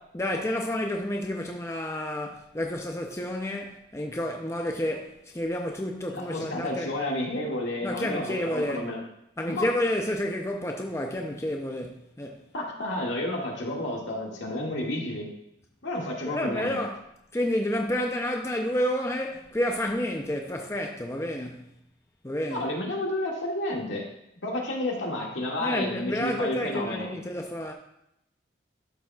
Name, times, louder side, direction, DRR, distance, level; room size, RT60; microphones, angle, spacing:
voice 1, 0.1-6.9 7.8-8.8 9.4-12.5 16.2-17.0 17.3-21.7 22.2-22.7 25.6-27.7, left 1 dB, 15° left, 2 dB, 0.5 m, -30 dB
voice 2, 6.1-9.0 9.4-9.7 12.5-15.3 15.8-16.7 22.5-24.0 24.4-27.1, left 1 dB, 75° left, -2 dB, 2.0 m, -31 dB
12.0 x 6.9 x 2.4 m, 0.79 s
head